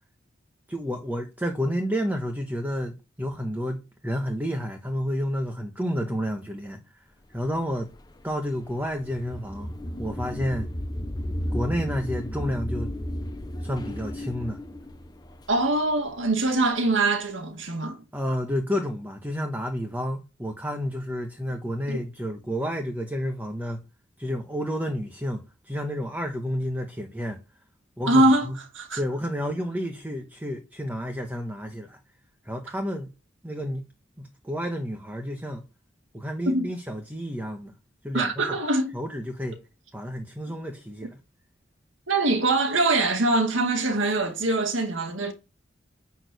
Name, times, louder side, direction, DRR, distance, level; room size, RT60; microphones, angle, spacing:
voice 1, 0.7-7.1 7.3-7.9 8.2-9.7 10.0-10.7 11.5-12.9 13.6-14.6 18.1-23.8 24.2-27.4 28.0-28.6 29.0-32.0 32.4-33.1 33.4-33.9 34.2-35.6 36.1-37.7 38.0-38.6 38.9-39.6 39.9-41.2, equal, 10° right, 1.3 m, -30 dB
sound 1, 7.5-16.4, equal, 20° left, 0.9 m, -34 dB
voice 2, 15.5-18.0 21.9-22.0 28.1-29.0 36.5-36.7 38.1-38.9 42.1-45.3, right 2 dB, 85° right, 2.1 m, -23 dB
11.0 x 4.5 x 6.9 m
head